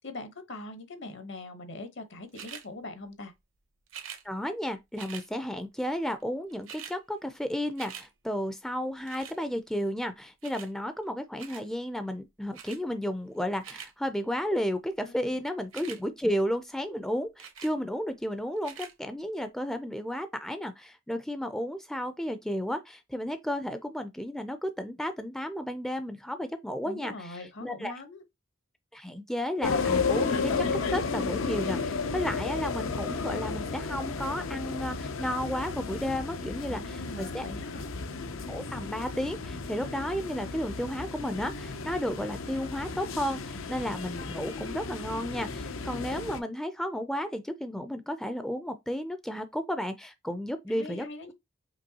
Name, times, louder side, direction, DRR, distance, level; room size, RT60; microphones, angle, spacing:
voice 1, 0.0-3.3 15.0-15.2 26.8-28.2 36.7-37.8 50.7-51.3, left 2 dB, 65° left, 1.0 m, -42 dB
sound 1, 2.3-2.7 3.9-4.2 5.0-5.3 6.2-6.3 6.5-7.0 7.4-8.1 9.1-9.4 10.4-10.7 11.4-11.7 12.5-12.8 13.4-13.9 15.6-16.0 17.4-17.8 18.6-18.9 19.6-19.7, right 8 dB, 80° right, 0.9 m, -44 dB
voice 2, 4.2-27.9 28.9-37.4 38.5-51.1, equal, 5° left, 0.4 m, -33 dB
sound 2, 29.6-46.4, left 4 dB, 80° left, 0.6 m, -33 dB
5.2 x 3.1 x 2.8 m
head